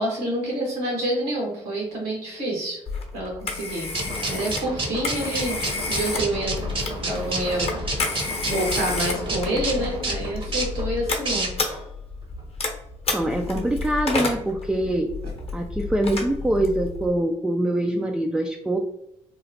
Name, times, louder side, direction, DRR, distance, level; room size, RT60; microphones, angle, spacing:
voice 1, 0.0-2.8 3.1-3.9 4.3-5.6 5.9-6.6 7.0-11.5, right 1 dB, 80° right, -2 dB, 1.2 m, -28 dB
Telephone, 2.9-17.1, left 3 dB, 40° left, 0.8 m, -31 dB
sound 1, 3.9-11.8, right 2 dB, 35° right, 0.8 m, -30 dB
voice 2, 13.1-15.1 15.5-18.8, right 1 dB, 5° right, 2 dB, 0.3 m, -24 dB
2.9 x 2.0 x 2.8 m, 0.80 s
hypercardioid pair, 50°, 16 cm